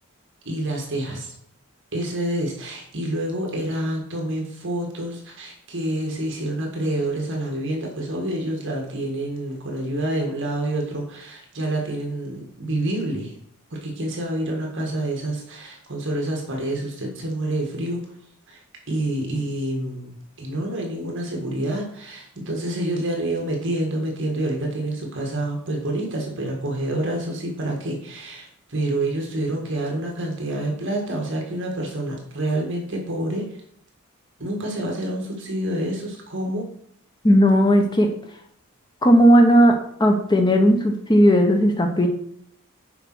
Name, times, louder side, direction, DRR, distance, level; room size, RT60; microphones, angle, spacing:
voice 1, 0.5-1.3 1.9-13.3 13.7-18.0 18.5-18.6 18.9-33.6 34.4-36.7, right 1 dB, 55° right, 0 dB, 1.7 m, -27 dB
voice 2, 37.2-38.1 39.0-39.7 40.0-42.1, equal, 20° left, 3 dB, 0.8 m, -15 dB
6.9 x 5.1 x 6.0 m, 0.68 s
head